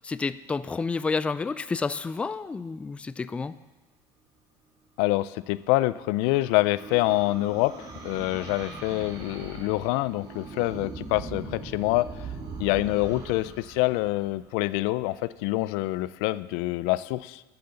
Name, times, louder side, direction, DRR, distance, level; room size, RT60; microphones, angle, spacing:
voice 1, 0.0-3.5, left 4 dB, 15° left, 15 dB, 0.3 m, -30 dB
voice 2, 5.0-7.8 8.0-12.1 12.6-17.4, left 19 dB, 85° left, 17 dB, 0.4 m, -26 dB
sound 1, 5.5-15.0, right 4 dB, 50° right, 2.2 m, -41 dB
11.5 x 6.8 x 6.9 m, 1.1 s
cardioid pair, 130°, 9 cm